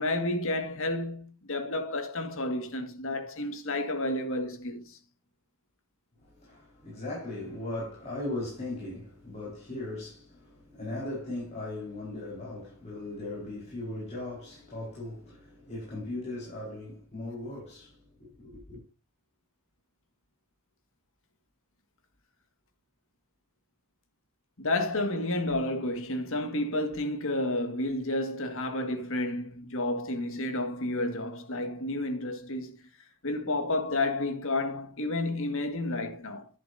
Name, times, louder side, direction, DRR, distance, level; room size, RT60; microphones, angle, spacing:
voice 1, 0.0-5.0 24.6-32.8 33.2-36.5, left 2 dB, 65° left, 1.9 m, -31 dB
voice 2, 6.2-18.8, left 2 dB, 30° left, 4.8 m, -38 dB
11.0 x 10.5 x 2.7 m
head